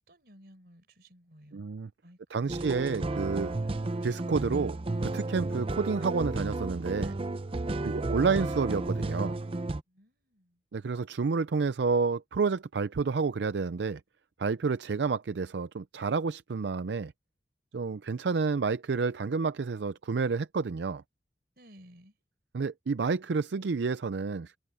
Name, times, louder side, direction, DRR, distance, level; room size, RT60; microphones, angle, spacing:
voice 1, 0.0-1.7 2.0-2.5 7.7-8.1 9.9-10.6 21.6-22.2, equal, 60° right, 4.5 m, -55 dB
voice 2, 1.5-1.9 2.3-3.5 4.0-4.8 5.0-7.1 7.8-9.4 10.7-14.0 14.4-17.1 17.7-21.0 22.5-24.6, right 4 dB, 80° right, 0.5 m, -29 dB
sound 1, 2.5-9.8, right 2 dB, 30° right, 0.5 m, -33 dB
head